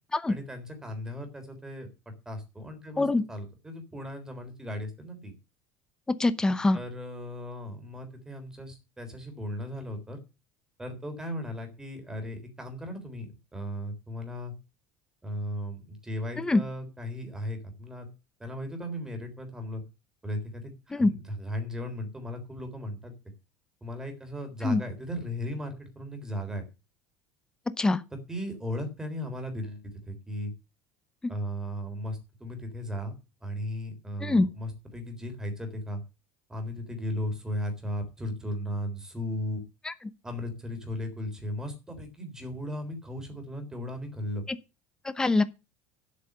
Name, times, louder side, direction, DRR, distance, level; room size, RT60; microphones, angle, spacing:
voice 1, 0.3-1.9 2.3-5.3 6.7-10.2 10.8-14.5 15.2-18.1 18.4-19.8 20.2-23.1 23.8-26.7 28.3-30.5 31.3-33.2 33.4-36.0 36.5-39.6 40.2-44.4, left 1 dB, 10° right, 3.7 m, -36 dB
voice 2, 6.2-6.8 16.4-16.6 20.9-21.1 24.6-24.8 27.8-28.0 34.2-34.5 39.9-40.0 45.0-45.4, left 2 dB, 10° left, 0.8 m, -23 dB
10.0 x 8.4 x 6.8 m
cardioid pair, 155°, 7 cm